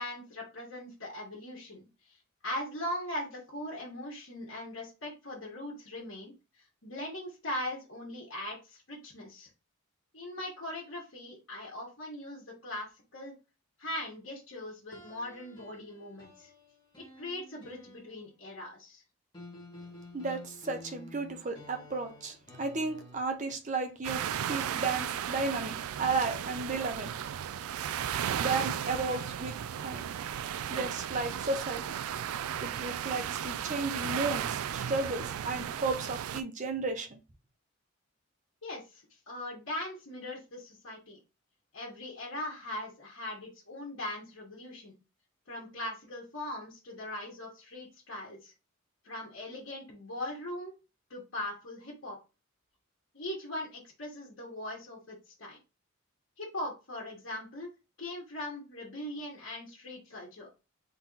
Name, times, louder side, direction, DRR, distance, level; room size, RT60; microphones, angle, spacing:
voice 1, 0.0-2.2 2.4-6.3 6.8-9.5 10.1-13.3 13.8-16.5 17.0-19.0 38.6-41.2 41.7-44.9 45.5-48.5 49.0-50.7 51.1-52.2 53.1-55.6 56.4-57.7 58.0-60.5, left 1 dB, 60° left, 1.6 m, -40 dB
sound 1, 14.9-18.4 19.3-23.2, left 2 dB, 20° left, 1.4 m, -51 dB
voice 2, 20.1-27.1 28.4-30.1 30.7-31.8 32.6-37.2, right 3 dB, 35° right, 0.7 m, -34 dB
sound 2, 24.0-36.4, right 9 dB, 85° right, 0.3 m, -35 dB
3.8 x 2.9 x 3.9 m
head